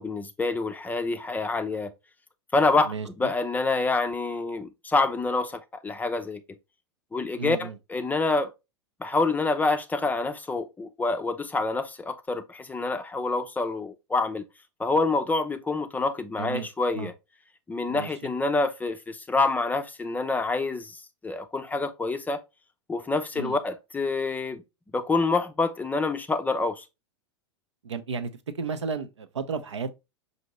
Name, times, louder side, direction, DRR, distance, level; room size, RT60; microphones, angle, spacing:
voice 1, 0.0-1.9 2.5-6.4 7.1-8.5 9.0-14.4 14.8-17.1 17.7-22.4 22.9-24.6 24.9-26.8, left 3 dB, 10° left, 0.4 m, -27 dB
voice 2, 2.9-3.3 7.4-7.7 16.4-16.7 16.9-17.1 17.9-18.3 23.4-23.6 27.8-28.3 28.6-29.9, right 5 dB, 90° right, 0.6 m, -33 dB
5.1 x 2.7 x 2.9 m
hypercardioid pair, 100°, 15 cm